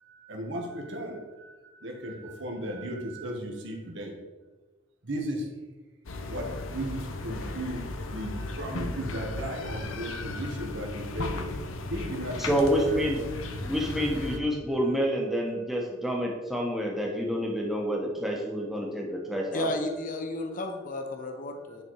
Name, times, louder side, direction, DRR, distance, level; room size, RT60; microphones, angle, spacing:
voice 1, 0.1-4.1 5.0-5.5 6.3-7.8 8.1-11.5 11.9-12.9 13.6-13.7, right 1 dB, 65° right, 1 dB, 1.5 m, -36 dB
sound 1, 6.1-14.4, left 2 dB, 90° left, 0.9 m, -36 dB
voice 2, 12.4-13.2 13.6-19.7, equal, ahead, -1 dB, 1.2 m, -28 dB
voice 3, 19.5-21.8, left 1 dB, 40° left, 4 dB, 0.9 m, -33 dB
10.0 x 4.4 x 4.7 m, 1.2 s
head